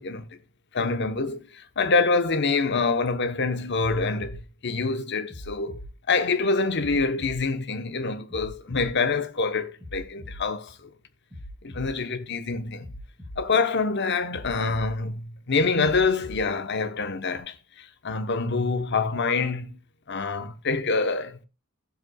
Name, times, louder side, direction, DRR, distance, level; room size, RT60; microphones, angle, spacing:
voice 1, 0.7-5.8 6.1-10.9 11.6-12.9 13.4-19.7 20.1-21.4, left 4 dB, 55° left, 1.0 m, -26 dB
sound 1, 4.2-4.4 5.3-5.9 6.8-7.4 8.3-8.9 9.8-10.4 11.3-11.9 12.8-13.4 14.3-14.9 15.8-16.4 17.3-17.4, equal, 10° right, 4.5 m, -40 dB
14.5 x 7.8 x 2.3 m
head